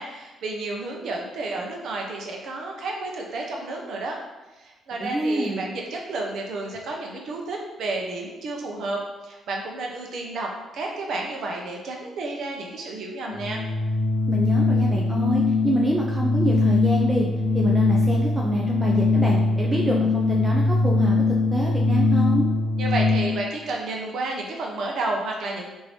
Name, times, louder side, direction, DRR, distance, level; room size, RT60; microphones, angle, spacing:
voice 1, 0.0-4.2 4.5-13.6 22.8-25.7, right 2 dB, 70° right, 0 dB, 0.6 m, -31 dB
voice 2, 5.0-5.6 14.3-17.3 17.5-22.5, right 1 dB, 15° right, -2 dB, 0.4 m, -27 dB
Organ, 13.2-23.5, left 3 dB, 45° left, 0.5 m, -21 dB
3.1 x 2.6 x 3.2 m, 1.1 s
cardioid pair, 90°, 0 cm